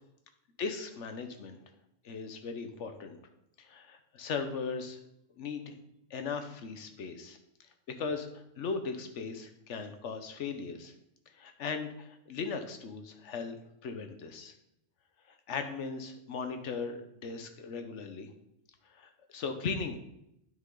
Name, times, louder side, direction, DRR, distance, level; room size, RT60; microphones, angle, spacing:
voice 1, 0.6-1.6 2.0-3.2 3.6-5.0 5.4-5.8 6.1-7.4 8.0-8.3 8.6-10.9 11.3-13.6 13.8-14.5 15.3-18.3 18.9-20.0, left 5 dB, 65° left, 7 dB, 1.2 m, -38 dB
9.3 x 5.7 x 3.8 m, 0.81 s
omnidirectional pair, 1.4 m